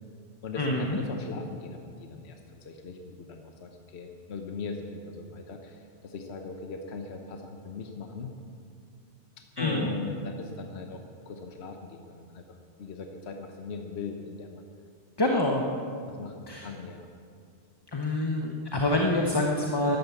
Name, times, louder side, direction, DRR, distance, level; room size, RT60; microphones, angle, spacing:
voice 1, 0.4-8.3 9.6-12.4 12.8-14.7 16.1-17.1, left 4 dB, 65° left, 4 dB, 1.2 m, -39 dB
voice 2, 9.6-9.9 15.2-15.6 16.5-16.7 17.9-20.0, left 1 dB, 20° left, 1 dB, 0.9 m, -26 dB
13.5 x 11.5 x 7.2 m, 2.4 s
omnidirectional pair, 1.2 m